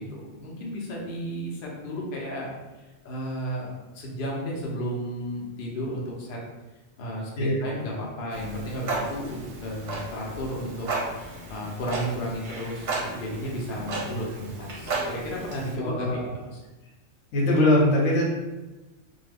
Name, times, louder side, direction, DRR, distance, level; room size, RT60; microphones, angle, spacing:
voice 1, 0.0-2.5 2.8-3.7 3.9-6.4 7.0-10.9 11.5-16.6, equal, 50° left, -3 dB, 0.8 m, -33 dB
Clock, 8.3-15.7, right 3 dB, 60° right, 0.8 m, -34 dB
voice 2, 15.8-16.2 17.3-18.2, left 1 dB, 80° left, -2 dB, 1.1 m, -22 dB
2.7 x 2.2 x 3.3 m, 1.1 s
omnidirectional pair, 1.3 m